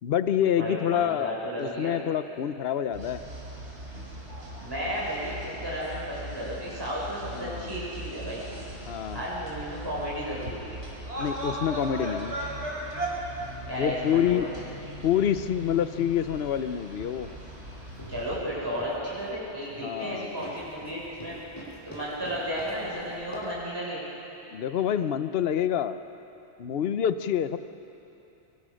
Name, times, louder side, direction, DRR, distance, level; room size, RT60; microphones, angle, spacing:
voice 1, 0.0-3.2 7.3-7.8 8.8-9.2 11.2-12.4 13.8-14.5 15.0-17.3 19.8-20.5 24.5-26.0 26.6-27.6, left 9 dB, 65° left, 11 dB, 1.0 m, -27 dB
voice 2, 0.6-1.9 4.6-8.4 9.1-10.8 13.7-14.5 18.1-21.4 21.9-24.0, equal, 20° right, -7 dB, 6.1 m, -33 dB
sound 1, 2.9-18.4, right 1 dB, 85° right, 5.2 m, -38 dB
sound 2, 17.8-23.7, right 1 dB, 15° left, 6.4 m, -45 dB
25.0 x 24.5 x 6.4 m, 2.9 s
omnidirectional pair, 1.1 m